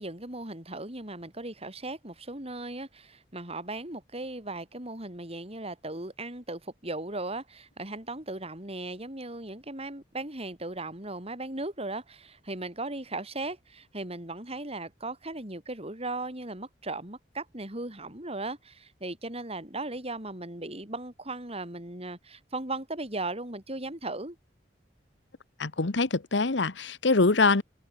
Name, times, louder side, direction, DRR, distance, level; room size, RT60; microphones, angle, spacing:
voice 1, 0.0-24.4, right 2 dB, 35° right, 7.5 m, -37 dB
voice 2, 25.6-27.6, left 3 dB, 80° left, 1.2 m, -24 dB
head